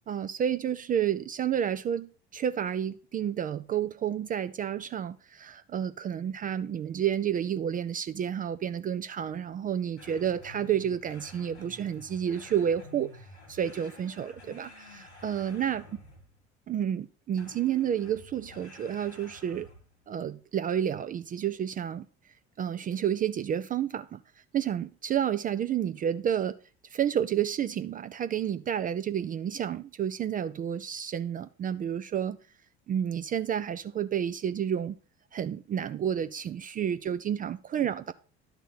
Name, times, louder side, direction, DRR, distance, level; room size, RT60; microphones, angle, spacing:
voice 1, 0.1-15.8 16.7-19.7 20.1-22.1 22.6-24.2 24.5-26.6 26.9-32.4 32.9-35.0 35.3-38.1, right 9 dB, 25° right, 0.4 m, -30 dB
sound 1, 10.0-16.4 17.4-20.0, left 1 dB, 85° left, 2.0 m, -50 dB
11.0 x 3.9 x 5.7 m
figure-of-eight pair, 60°, 33 cm